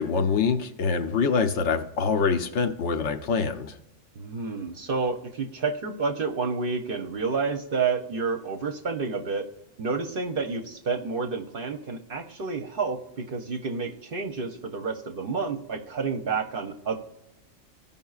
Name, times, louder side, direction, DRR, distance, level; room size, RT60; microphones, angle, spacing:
voice 1, 0.0-3.7, left 5 dB, 65° left, 7 dB, 0.9 m, -25 dB
voice 2, 4.2-9.5 9.8-17.0, right 4 dB, 55° right, 6 dB, 0.8 m, -29 dB
15.5 x 5.5 x 2.4 m, 0.85 s
omnidirectional pair, 1.3 m